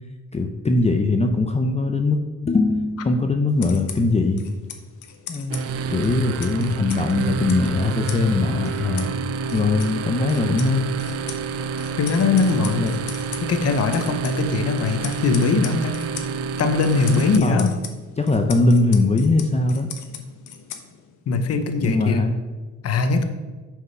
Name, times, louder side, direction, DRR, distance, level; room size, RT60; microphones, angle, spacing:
voice 1, 0.3-2.2 2.4-4.4 5.3-9.1 9.5-10.9 12.8-12.9 17.4-17.7 18.2-19.9 21.8-22.4, left 3 dB, 20° left, 5 dB, 0.6 m, -21 dB
sound 1, 3.5-21.3, left 8 dB, 80° left, 1.0 m, -40 dB
sound 2, 5.5-17.4, right 5 dB, 50° right, 0.5 m, -29 dB
voice 2, 12.0-12.9 13.4-16.0 16.6-17.8 21.3-22.3 22.8-23.3, left 4 dB, 55° left, 8 dB, 0.9 m, -21 dB
6.5 x 4.9 x 5.5 m, 1.3 s
cardioid pair, 90°, 30 cm